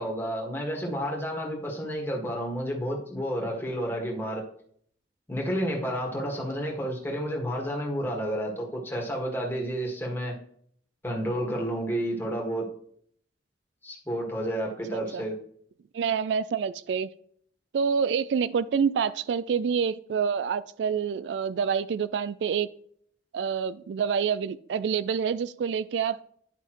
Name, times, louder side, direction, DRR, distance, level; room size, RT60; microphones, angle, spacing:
voice 1, 0.0-4.4 5.3-10.4 11.0-12.7 13.8-15.3, equal, 10° left, -2 dB, 1.7 m, -30 dB
voice 2, 14.9-15.2 15.9-17.1 17.7-22.7 23.3-26.2, right 6 dB, 70° right, 16 dB, 0.3 m, -27 dB
11.0 x 5.6 x 3.1 m, 0.62 s
head